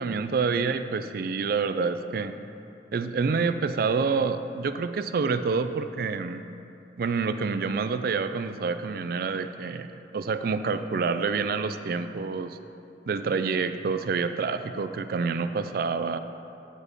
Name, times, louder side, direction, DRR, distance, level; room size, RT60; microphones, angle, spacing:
voice 1, 0.0-2.3 2.9-6.5 7.0-12.6 13.1-16.2, right 5 dB, 55° right, 10 dB, 0.4 m, -27 dB
8.8 x 8.2 x 3.5 m, 2.6 s
head